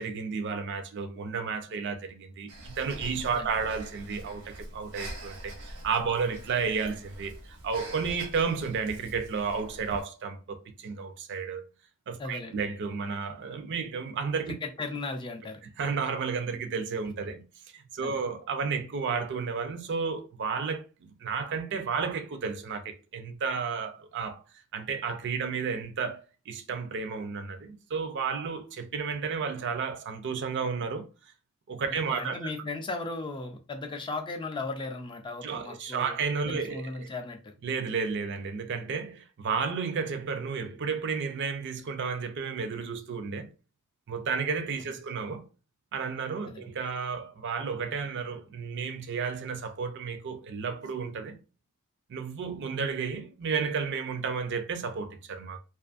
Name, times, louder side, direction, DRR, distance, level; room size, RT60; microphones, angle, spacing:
voice 1, 0.0-11.7 12.1-14.5 15.8-17.4 17.7-20.9 21.2-24.4 24.7-31.1 31.7-32.5 35.4-37.1 37.6-43.5 44.1-45.5 45.9-51.4 52.1-55.6, right 5 dB, 50° right, 0.4 m, -32 dB
Breathing, 2.5-10.0, right 1 dB, 85° right, 0.9 m, -44 dB
voice 2, 12.2-12.5 14.6-15.6 18.0-18.2 31.9-36.1 36.4-37.5 44.9-45.0 46.4-46.7, left 3 dB, 20° left, 0.3 m, -36 dB
2.5 x 2.4 x 2.4 m
head